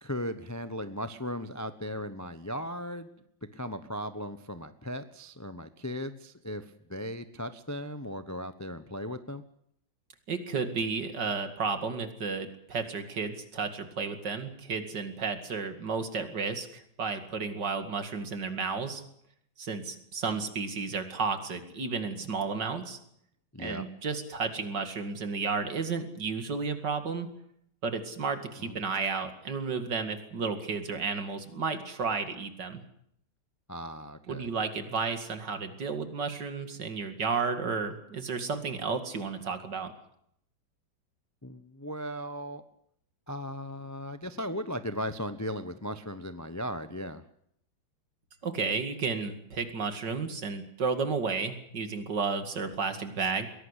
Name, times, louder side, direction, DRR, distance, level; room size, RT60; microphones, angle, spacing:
voice 1, 0.0-3.2 3.5-9.4 23.5-23.8 28.6-28.9 33.7-34.5 41.4-42.6 43.3-47.2, equal, 15° left, 11 dB, 0.6 m, -37 dB
voice 2, 10.3-19.0 19.6-23.0 23.6-27.3 27.8-32.8 34.3-39.9 48.4-53.5, right 5 dB, 60° right, 8 dB, 2.8 m, -32 dB
22.5 x 17.5 x 8.2 m, 0.70 s
omnidirectional pair, 2.1 m